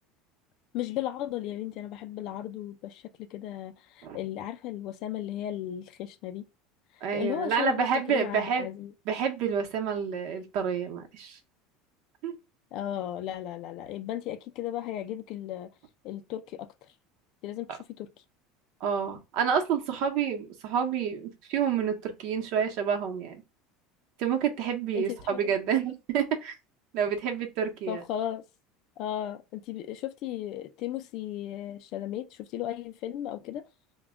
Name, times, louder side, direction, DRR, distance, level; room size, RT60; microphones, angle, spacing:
voice 1, 0.7-6.5 7.1-8.9 12.7-15.7 16.0-16.7 17.4-18.1 24.9-25.5 27.9-28.4 29.0-33.6, left 12 dB, 50° left, 0.3 m, -35 dB
voice 2, 7.0-8.7 9.1-11.4 12.2-12.4 18.8-23.4 24.2-26.5 26.9-28.0, right 7 dB, 55° right, 0.8 m, -28 dB
2.2 x 2.1 x 3.5 m
cardioid pair, 155°, 0 cm